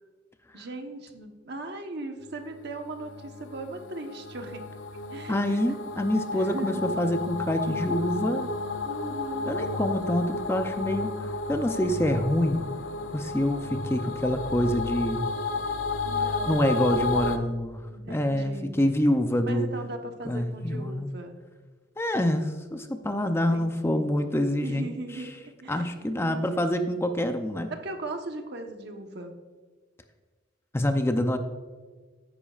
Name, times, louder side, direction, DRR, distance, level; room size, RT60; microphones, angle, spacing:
voice 1, 0.5-4.6 5.1-5.7 6.3-7.0 8.8-9.6 16.0-17.1 17.9-18.8 19.5-21.3 23.5-24.1 24.6-26.9 27.7-29.3, right 2 dB, 60° right, 4 dB, 1.1 m, -39 dB
sound 1, 2.5-17.4, left 3 dB, 90° left, 0.7 m, -32 dB
voice 2, 5.3-8.5 9.5-11.1 11.5-12.7 13.1-15.2 16.5-17.8 18.1-19.7 20.3-21.1 22.0-24.9 25.7-27.7 30.7-31.4, left 1 dB, 15° left, 7 dB, 0.5 m, -26 dB
13.5 x 10.0 x 2.4 m, 1.5 s
head